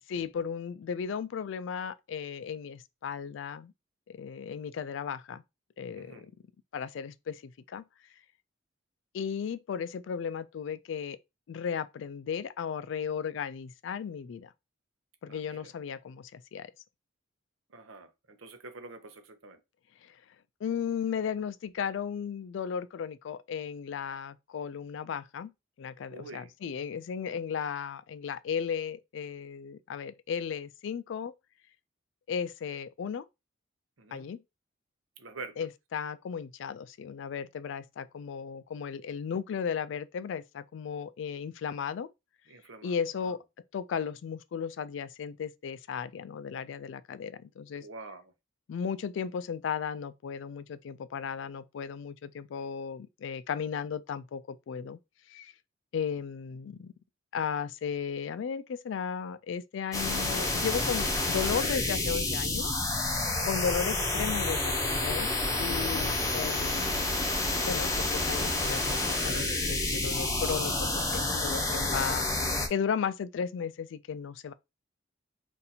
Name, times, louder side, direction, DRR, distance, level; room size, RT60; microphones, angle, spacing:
voice 1, 0.1-3.7 4.1-5.4 5.8-6.3 6.7-7.8 9.1-11.2 11.5-14.5 15.2-16.7 20.0-20.2 20.6-25.5 25.8-31.3 32.3-33.2 34.1-34.4 35.6-42.1 42.8-43.4 43.7-47.9 48.7-55.0 55.3-55.5 55.9-56.9 57.3-62.7 63.4-65.3 65.6-67.2 67.6-72.3 72.7-74.5, left 7 dB, 65° left, 0.3 m, -35 dB
voice 2, 5.9-6.3 15.3-15.7 17.7-19.6 26.1-26.5 34.0-34.3 35.2-35.7 42.5-43.0 47.8-48.2 63.2-63.5, right 3 dB, 90° right, 0.7 m, -46 dB
sound 1, 59.9-72.7, left 2 dB, 15° left, 0.7 m, -29 dB
2.8 x 2.5 x 4.1 m
head